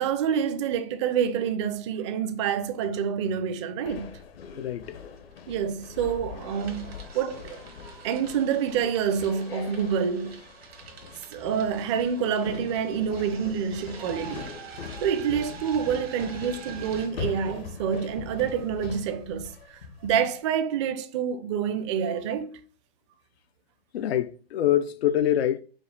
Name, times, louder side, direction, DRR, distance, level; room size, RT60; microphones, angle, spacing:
voice 1, 0.0-4.2 5.5-7.6 8.0-10.4 11.3-14.5 15.0-22.6, right 7 dB, 30° right, 0.4 m, -27 dB
sound 1, 3.8-20.3, left 6 dB, 70° left, 0.9 m, -41 dB
voice 2, 4.6-5.0 11.1-11.2 23.9-25.6, left 11 dB, 90° left, 0.5 m, -25 dB
sound 2, 4.9-5.0 5.3-6.1 6.4-17.1, right 7 dB, 80° right, 1.3 m, -46 dB
4.9 x 2.2 x 3.3 m
hypercardioid pair, 145°, 30 cm